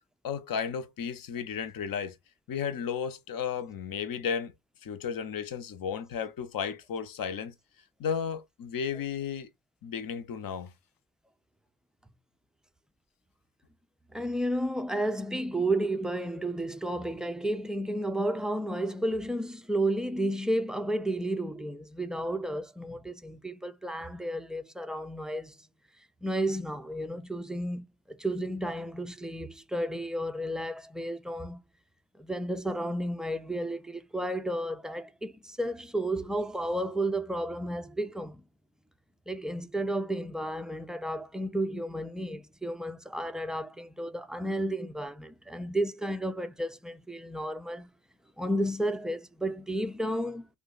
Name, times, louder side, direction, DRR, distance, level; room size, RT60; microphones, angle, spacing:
voice 1, 0.2-2.1 2.5-4.5 4.8-7.5 8.0-9.5 9.8-10.7, left 7 dB, 45° left, 0.7 m, -33 dB
voice 2, 14.1-25.6 26.2-31.6 32.2-38.4 39.3-47.9 48.4-50.5, right 1 dB, ahead, 0.4 m, -32 dB
2.6 x 2.2 x 3.8 m
hypercardioid pair, 45°, 47 cm